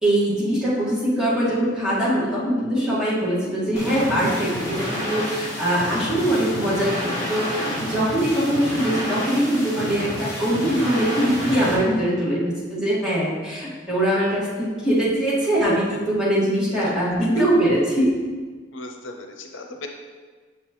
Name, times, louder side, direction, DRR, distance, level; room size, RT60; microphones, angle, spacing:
voice 1, 0.0-18.1, right 1 dB, 5° right, -10 dB, 2.1 m, -22 dB
sound 1, 3.7-11.7, equal, 20° left, 2.0 m, -29 dB
voice 2, 18.7-19.9, left 2 dB, 85° left, 4 dB, 0.6 m, -37 dB
6.6 x 5.8 x 3.1 m, 1.4 s
head